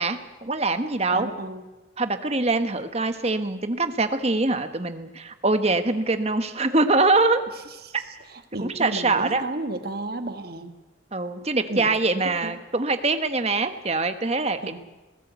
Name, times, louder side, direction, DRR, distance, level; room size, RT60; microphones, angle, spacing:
voice 1, 0.0-1.3 2.0-7.4 7.9-8.0 8.6-9.4 11.1-14.8, right 3 dB, 35° right, 9 dB, 1.2 m, -24 dB
voice 2, 1.1-1.6 7.8-7.9 8.3-10.7 11.7-11.9 12.2-12.5 14.6-14.8, right 2 dB, 55° right, 8 dB, 1.6 m, -33 dB
21.0 x 16.0 x 8.2 m, 1.1 s
head